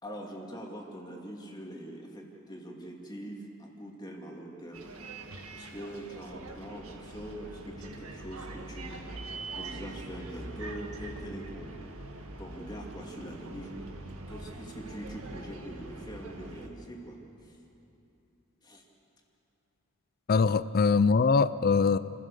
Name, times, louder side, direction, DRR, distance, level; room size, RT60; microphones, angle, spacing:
voice 1, 0.0-4.8 5.5-9.2 9.5-11.8 12.4-13.7 14.3-17.6 18.6-18.8, right 1 dB, 20° left, 0 dB, 2.6 m, -43 dB
Bus, 4.7-16.7, right 2 dB, 80° right, 1.8 m, -43 dB
voice 2, 20.3-22.0, left 4 dB, 45° left, 15 dB, 0.4 m, -23 dB
29.0 x 16.0 x 6.8 m, 2.8 s
head